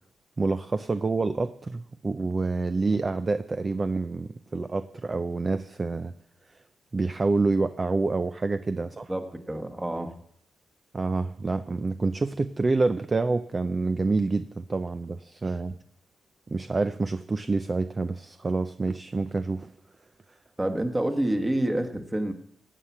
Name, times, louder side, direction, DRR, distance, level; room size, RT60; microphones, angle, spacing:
voice 1, 0.4-6.1 6.9-9.1 10.9-15.7 16.5-19.7, right 3 dB, 30° right, 11 dB, 0.6 m, -27 dB
voice 2, 8.8-10.1 20.6-22.3, right 1 dB, 15° right, 5 dB, 1.6 m, -28 dB
16.5 x 5.8 x 9.5 m, 0.70 s
cardioid pair, 85°, 0 cm